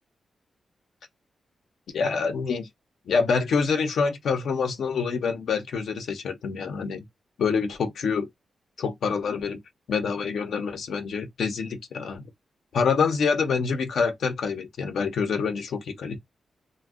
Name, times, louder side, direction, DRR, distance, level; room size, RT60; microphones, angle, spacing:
voice 1, 1.9-2.7 3.1-7.0 7.4-8.3 8.8-9.6 9.9-12.3 12.7-16.2, left 5 dB, 75° left, 0.8 m, -26 dB
2.5 x 2.2 x 3.6 m
wide cardioid pair, 160°, 0 cm